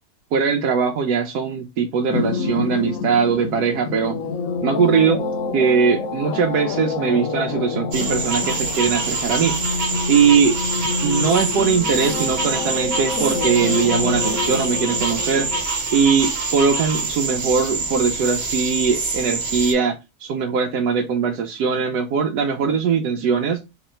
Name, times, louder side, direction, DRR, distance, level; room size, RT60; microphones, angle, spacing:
voice 1, 0.3-4.2 4.6-5.2 5.5-9.6 10.1-10.6 11.0-15.5 15.9-23.6, right 6 dB, 75° right, 1.1 m, -20 dB
sound 1, 2.1-15.6, left 4 dB, 65° left, 1.0 m, -27 dB
sound 2, 7.9-19.7, right 3 dB, 45° right, 1.2 m, -25 dB
3.9 x 2.9 x 4.3 m
omnidirectional pair, 1.8 m